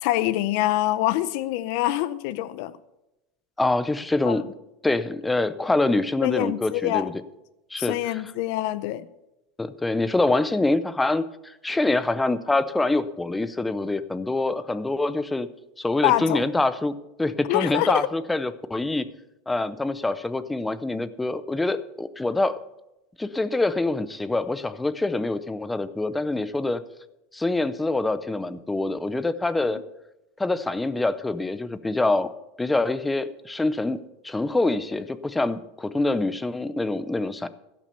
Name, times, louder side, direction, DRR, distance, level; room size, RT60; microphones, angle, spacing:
voice 1, 0.0-2.7 4.3-4.4 6.2-7.1 7.8-9.1 16.0-16.4 17.5-18.1, left 15 dB, 55° left, 0.6 m, -25 dB
voice 2, 3.6-4.4 4.8-7.1 7.7-8.2 9.6-15.5 15.8-16.9 17.2-19.1 19.5-22.6 23.2-26.8 27.3-29.8 30.4-32.3 32.6-34.0 34.2-37.5, left 2 dB, 5° left, 0.5 m, -25 dB
16.0 x 6.1 x 6.8 m
supercardioid pair, 170°, 0 cm